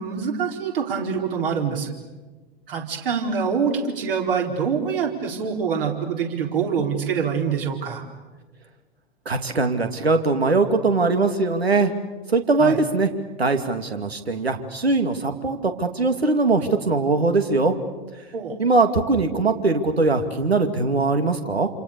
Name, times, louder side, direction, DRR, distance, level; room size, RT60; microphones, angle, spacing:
voice 1, 0.0-1.9 2.7-8.0 12.6-12.8 18.3-18.6, right 6 dB, 60° right, 2 dB, 4.6 m, -25 dB
voice 2, 9.3-11.9 12.3-13.1 13.4-17.7 18.6-21.7, right 3 dB, 75° right, 7 dB, 2.6 m, -21 dB
28.0 x 27.5 x 6.9 m, 1.2 s
figure-of-eight pair, 100°, 31 cm